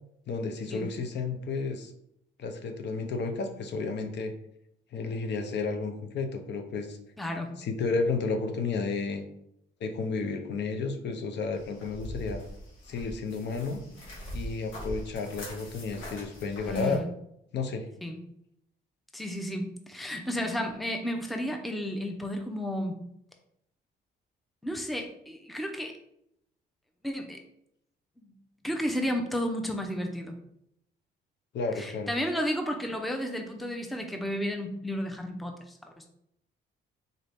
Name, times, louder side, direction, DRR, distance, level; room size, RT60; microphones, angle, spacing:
voice 1, 0.3-1.9 2.4-4.3 4.9-7.0 7.6-9.2 9.8-12.4 12.9-13.8 14.3-17.0 17.5-17.9 31.5-32.1, left 4 dB, 60° left, 5 dB, 0.6 m, -32 dB
voice 2, 7.2-7.6 16.7-17.1 18.0-18.2 19.1-23.0 24.6-26.0 27.0-27.4 28.2-28.3 28.6-30.4 31.8-36.0, equal, ahead, 3 dB, 0.5 m, -32 dB
sound 1, 11.5-17.0, equal, 85° left, 1.3 m, -42 dB
3.9 x 2.6 x 3.4 m, 0.76 s
cardioid pair, 90°, 20 cm